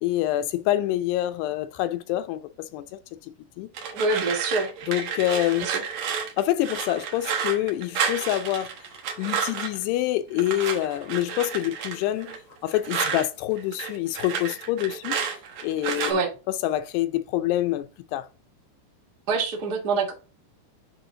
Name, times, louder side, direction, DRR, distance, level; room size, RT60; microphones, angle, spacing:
voice 1, 0.0-3.7 4.9-5.7 6.4-8.7 9.2-12.4 12.6-15.2 15.6-16.1 16.6-18.3, left 14 dB, 85° left, 2.6 m, -26 dB
sound 1, 3.7-9.8 10.4-13.3 13.6-16.1, right 6 dB, 65° right, 1.7 m, -31 dB
voice 2, 3.9-4.7 5.6-5.8 16.1-16.3 19.3-20.1, right 3 dB, 90° right, 0.8 m, -25 dB
9.9 x 3.4 x 3.7 m
omnidirectional pair, 4.9 m